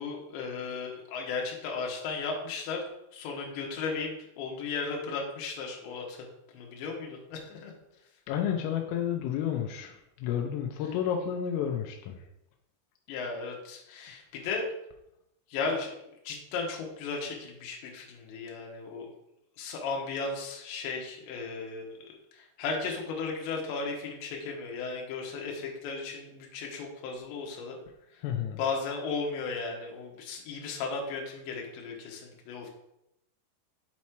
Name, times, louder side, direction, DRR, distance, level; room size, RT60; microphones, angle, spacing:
voice 1, 0.0-2.8 3.1-4.1 4.4-6.3 6.5-7.7 13.1-14.7 15.5-15.9 16.2-19.1 19.6-22.0 22.3-27.8 28.1-28.2 28.6-32.7, left 4 dB, 70° left, 0 dB, 3.4 m, -35 dB
voice 2, 8.3-12.2 28.2-28.6, left 9 dB, 85° left, 3 dB, 3.3 m, -31 dB
8.4 x 4.2 x 4.6 m, 0.82 s
omnidirectional pair, 5.6 m